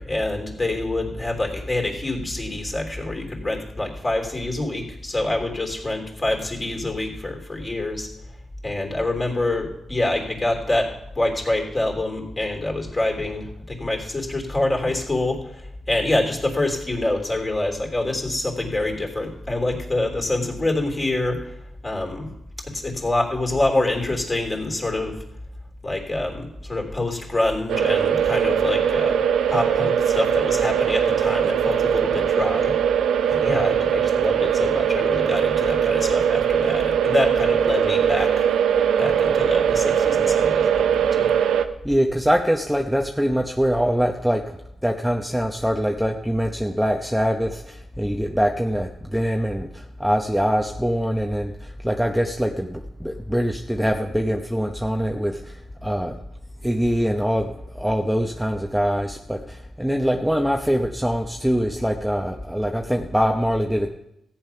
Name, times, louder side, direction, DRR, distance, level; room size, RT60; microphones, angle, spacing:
voice 1, 0.0-8.1 8.6-21.6 21.8-22.3 22.6-25.2 25.8-29.2 29.5-32.7 33.3-38.5 39.0-41.3, left 2 dB, 25° left, 2 dB, 3.3 m, -26 dB
sound 1, 27.7-41.6, right 8 dB, 85° right, 0.7 m, -21 dB
voice 2, 41.8-44.6 44.8-56.2 56.6-63.9, equal, ahead, 2 dB, 0.9 m, -23 dB
14.5 x 8.8 x 5.8 m, 0.82 s
cardioid pair, 75°, 0 cm